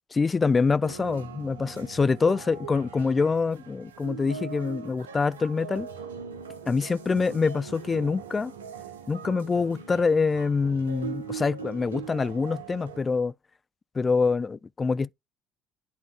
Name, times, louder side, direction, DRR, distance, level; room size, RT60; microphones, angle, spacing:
voice 1, 0.1-5.9 6.7-8.5 9.1-13.3 13.9-15.1, left 4 dB, 30° left, 0.3 m, -25 dB
sound 1, 0.8-13.0, right 6 dB, 85° right, 1.0 m, -41 dB
11.0 x 4.1 x 2.3 m
hypercardioid pair, 55°, 0 cm